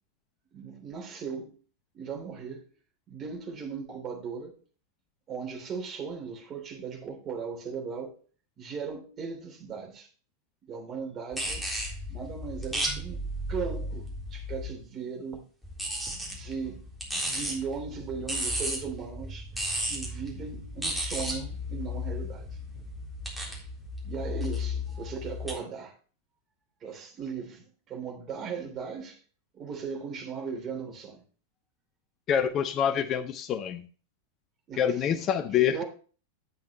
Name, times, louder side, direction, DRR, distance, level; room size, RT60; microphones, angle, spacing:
voice 1, 0.5-1.6 1.9-2.7 3.1-4.6 5.3-8.2 8.6-10.1 10.7-11.7 12.1-13.2 13.5-15.4 15.9-16.8 17.1-19.5 19.8-22.5 24.0-25.9 26.8-29.2 29.5-31.2 34.7-35.3 35.7-35.8, right 6 dB, 30° right, 3.1 m, -38 dB
sound 1, 11.3-14.8 15.6-25.5, left 1 dB, ahead, 3.7 m, -34 dB
voice 2, 32.3-33.8 34.8-35.8, left 8 dB, 30° left, 0.7 m, -26 dB
10.5 x 8.4 x 3.0 m
figure-of-eight pair, 90°, 0 cm